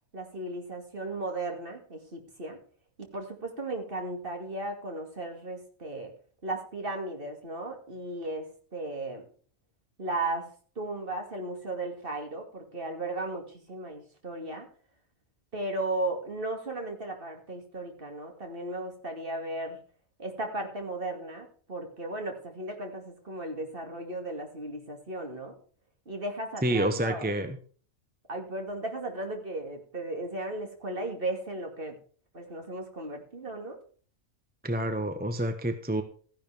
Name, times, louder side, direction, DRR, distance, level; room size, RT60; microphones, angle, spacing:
voice 1, 0.1-2.6 3.0-6.1 6.4-9.3 10.0-10.5 10.8-14.7 15.5-19.8 20.2-25.6 26.1-27.3 28.3-32.0 32.3-33.8, right 2 dB, 45° right, 3 dB, 2.6 m, -35 dB
voice 2, 26.6-27.6 34.6-36.0, right 1 dB, 10° right, 8 dB, 1.0 m, -28 dB
14.5 x 10.5 x 3.5 m, 0.42 s
omnidirectional pair, 1.4 m